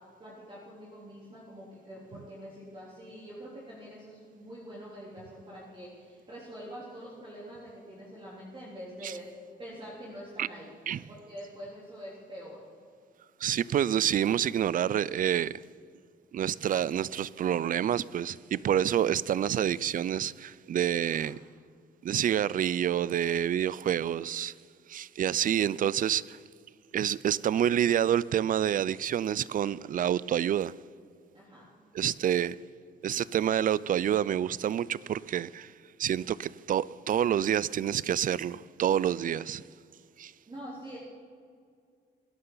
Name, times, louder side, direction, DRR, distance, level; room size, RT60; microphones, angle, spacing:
voice 1, 0.2-9.3 9.6-10.7 11.1-12.6 21.2-21.3 31.3-31.7 32.5-32.6 40.5-41.0, equal, 25° right, 3.4 m, -45 dB
voice 2, 13.4-15.6 16.3-21.4 22.0-24.5 24.9-26.4 26.9-30.7 31.9-32.5 33.0-35.7 36.0-39.6 40.2-40.3, right 10 dB, 45° right, 0.4 m, -28 dB
21.0 x 11.0 x 3.9 m
cardioid pair, 90°, 20 cm